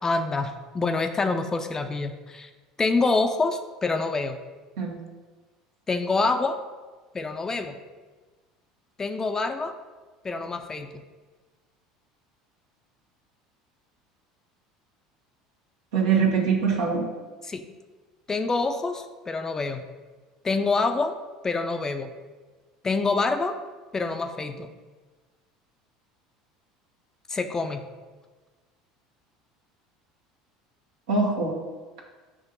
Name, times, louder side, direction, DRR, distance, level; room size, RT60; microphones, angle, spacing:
voice 1, 0.0-2.5 2.8-4.4 5.9-6.6 7.1-7.8 9.0-9.7 10.2-10.9 17.4-17.6 18.3-19.8 20.4-21.2 21.4-22.1 22.8-23.6 23.9-24.7 27.3-27.8, left 3 dB, 25° left, 7 dB, 0.5 m, -26 dB
voice 2, 15.9-17.0 31.1-31.5, right 5 dB, 75° right, -2 dB, 1.4 m, -23 dB
6.1 x 2.9 x 5.4 m, 1.3 s
hypercardioid pair, 75°, 2 cm